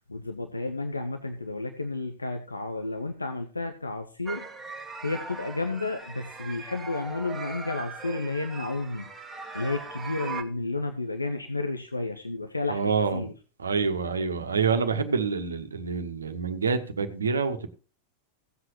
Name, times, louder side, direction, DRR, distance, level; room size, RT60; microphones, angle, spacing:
voice 1, 0.1-4.4 5.0-9.1 9.5-13.3, left 3 dB, 80° left, 7 dB, 1.1 m, -32 dB
sound 1, 4.3-10.4, right 4 dB, 10° right, 1.7 m, -39 dB
voice 2, 12.7-13.3 13.6-17.7, right 5 dB, 75° right, 7 dB, 1.4 m, -27 dB
17.0 x 7.9 x 3.0 m, 0.36 s
figure-of-eight pair, 90°, 0 cm